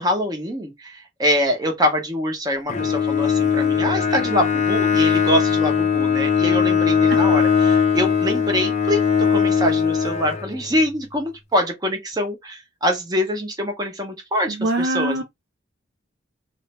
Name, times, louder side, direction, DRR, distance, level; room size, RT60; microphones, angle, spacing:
voice 1, 0.0-15.2, equal, 20° right, 0.7 m, -24 dB
Bowed string instrument, 2.7-10.9, left 7 dB, 35° left, 0.5 m, -20 dB
voice 2, 14.5-15.2, right 1 dB, 55° right, 0.4 m, -23 dB
2.5 x 2.1 x 2.9 m
head